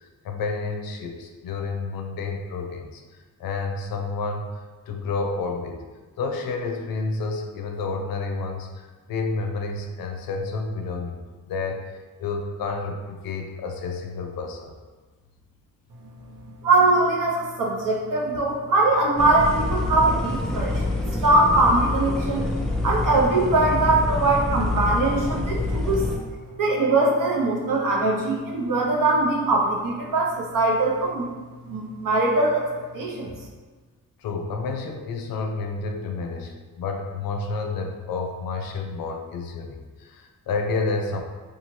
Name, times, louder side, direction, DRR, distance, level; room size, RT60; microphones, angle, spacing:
voice 1, 0.2-3.0 3.4-4.5 4.9-5.8 6.2-8.7 9.1-11.8 12.2-14.7 34.2-41.2, left 3 dB, 75° left, 3 dB, 0.5 m, -30 dB
voice 2, 16.4-22.4 22.8-26.0 26.6-31.3 31.7-32.6 32.9-33.3, right 2 dB, 65° right, -2 dB, 0.7 m, -21 dB
sound 1, 19.2-26.2, left 2 dB, ahead, 0.4 m, -26 dB
2.7 x 2.4 x 3.0 m, 1.4 s
cardioid pair, 70°, 35 cm